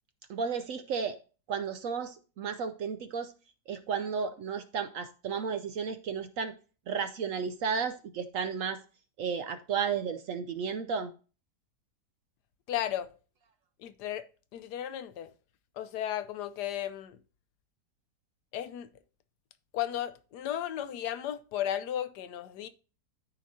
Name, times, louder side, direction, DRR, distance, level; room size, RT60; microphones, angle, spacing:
voice 1, 0.3-1.2 1.5-3.3 3.7-6.5 6.9-8.8 9.2-11.1, right 6 dB, 70° right, 0.8 m, -33 dB
voice 2, 12.7-13.1 13.8-14.2 14.5-15.3 15.8-17.2 18.5-18.9 19.7-22.7, left 11 dB, 75° left, 1.2 m, -34 dB
13.0 x 5.0 x 2.7 m
omnidirectional pair, 1.8 m